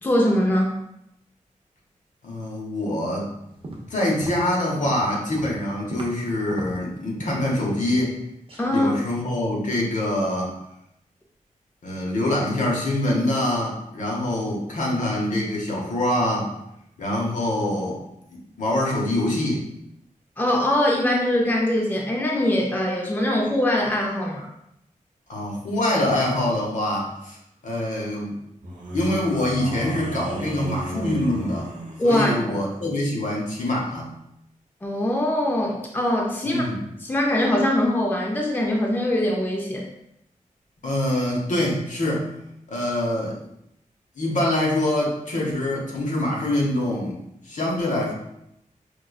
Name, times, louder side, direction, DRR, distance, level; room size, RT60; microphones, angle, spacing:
voice 1, 0.0-0.8 8.6-8.9 20.4-24.5 32.0-32.5 34.8-36.6 37.0-39.9, left 1 dB, 15° left, -1 dB, 0.4 m, -22 dB
voice 2, 2.2-3.3 3.9-8.2 8.7-10.5 11.8-16.5 17.0-18.0 18.3-19.6 25.3-27.4 27.6-28.3 28.9-31.7 32.0-34.1 36.4-36.8 40.8-42.3 42.7-43.4 44.2-47.2 47.4-48.1, left 1 dB, 65° left, -2 dB, 0.9 m, -25 dB
sound 1, 3.5-6.2 6.5-7.5 7.9-8.2 8.5-8.7, right 1 dB, 40° right, 0.5 m, -38 dB
sound 2, 26.0-26.5 28.6-32.1, right 1 dB, 80° right, 0.8 m, -35 dB
4.8 x 2.3 x 2.3 m, 0.80 s
wide cardioid pair, 140°, 14 cm